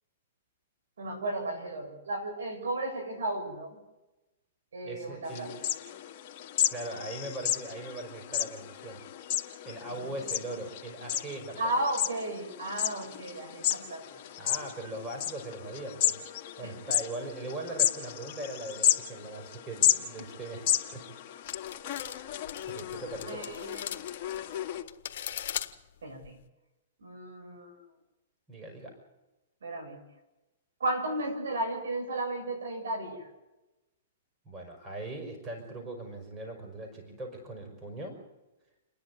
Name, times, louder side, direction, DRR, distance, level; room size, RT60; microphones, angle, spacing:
voice 1, 1.0-3.8 4.7-5.5 9.8-10.3 11.6-14.2 16.6-16.7 23.3-24.0 26.0-26.4 27.0-27.8 29.6-30.0 30.8-33.3, right 1 dB, 85° right, 3 dB, 7.6 m, -34 dB
voice 2, 4.8-5.5 6.7-9.0 9.6-11.7 14.4-16.2 16.6-21.3 22.6-23.5 28.5-28.9 34.5-38.2, right 2 dB, 20° right, 2 dB, 5.6 m, -40 dB
sound 1, 5.3-24.8, left 11 dB, 40° left, 2.0 m, -33 dB
sound 2, 21.5-26.4, left 10 dB, 60° left, 1.5 m, -40 dB
29.0 x 11.0 x 9.8 m, 1.0 s
hypercardioid pair, 140°, 0 cm